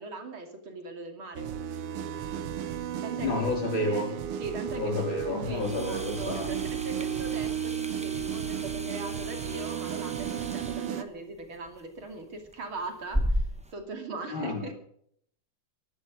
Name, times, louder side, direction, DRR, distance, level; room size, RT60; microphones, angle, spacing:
voice 1, 0.0-1.5 2.6-3.6 3.9-4.1 4.4-13.4 13.7-14.7, right 2 dB, 70° right, 5 dB, 3.5 m, -40 dB
sound 1, 1.3-11.0, right 9 dB, 90° right, 2.0 m, -34 dB
voice 2, 3.2-4.1 4.7-6.5 14.3-14.7, left 2 dB, 65° left, 2 dB, 4.5 m, -30 dB
sound 2, 5.5-13.7, equal, 10° right, 0.4 m, -36 dB
16.0 x 11.5 x 6.4 m, 0.65 s
omnidirectional pair, 2.3 m